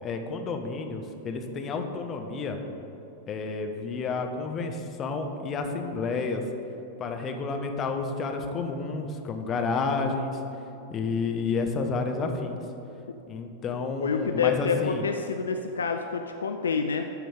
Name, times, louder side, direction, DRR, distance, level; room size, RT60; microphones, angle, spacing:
voice 1, 0.0-2.6 3.3-6.4 7.0-10.4 10.9-12.6 13.3-15.0, left 4 dB, 30° left, 4 dB, 0.8 m, -30 dB
voice 2, 14.0-17.0, left 6 dB, 70° left, 6 dB, 0.4 m, -28 dB
13.0 x 5.0 x 3.7 m, 2.9 s
figure-of-eight pair, 90°, 0 cm